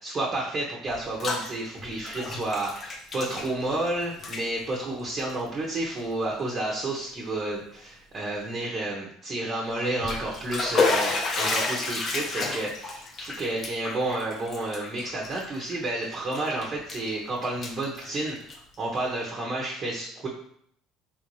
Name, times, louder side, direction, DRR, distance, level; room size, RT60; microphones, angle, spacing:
voice 1, 0.0-20.3, right 2 dB, 40° right, -3 dB, 0.9 m, -31 dB
Bathtub (filling or washing), 0.9-1.5 1.8-3.9 4.1-4.4 5.2-5.3 6.0-6.1 6.5-6.6 9.8-15.9 16.3-17.1 17.4-18.8, left 3 dB, 40° left, 0.7 m, -30 dB
3.6 x 2.6 x 3.1 m, 0.66 s
hypercardioid pair, 75°, 0 cm